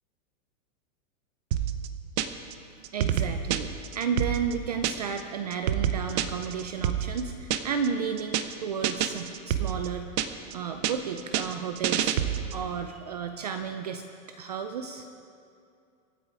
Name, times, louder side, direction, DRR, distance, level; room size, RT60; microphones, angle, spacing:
sound 1, 1.5-2.5 2.8-5.2 5.5-7.9 8.2-8.5 8.8-10.5 10.8-12.6, right 10 dB, 55° right, 0.8 m, -28 dB
voice 1, 2.9-10.3 10.5-12.1 12.5-15.1, right 6 dB, 35° right, 7 dB, 0.4 m, -33 dB
24.0 x 8.5 x 4.8 m, 2.5 s
supercardioid pair, 175°, 39 cm